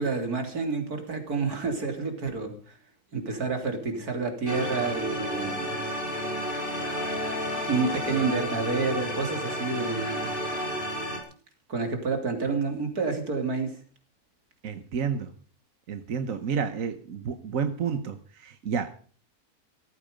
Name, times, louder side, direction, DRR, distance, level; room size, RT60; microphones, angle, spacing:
voice 1, 0.0-2.8 3.1-5.8 7.6-10.4 11.7-13.8, right 4 dB, 80° right, 5 dB, 3.6 m, -29 dB
sound 1, 4.5-11.2, equal, 35° left, 4.6 m, -31 dB
voice 2, 14.6-15.3 15.9-19.0, right 6 dB, 60° right, 9 dB, 1.5 m, -30 dB
17.5 x 14.5 x 5.2 m, 0.42 s
omnidirectional pair, 1.6 m